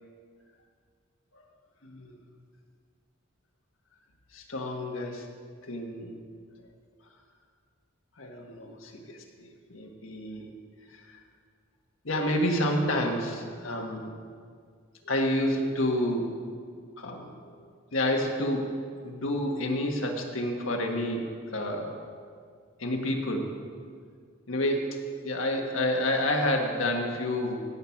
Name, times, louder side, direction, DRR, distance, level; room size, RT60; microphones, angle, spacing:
voice 1, 1.8-2.2 4.3-5.2 5.6-6.1 8.2-10.5 10.9-11.2 12.0-14.1 15.0-16.3 17.0-17.3 17.9-18.7 19.0-21.9 22.8-23.5 24.5-24.8 25.2-27.6, left 1 dB, 80° left, 1 dB, 1.6 m, -29 dB
17.0 x 6.8 x 5.9 m, 2.1 s
head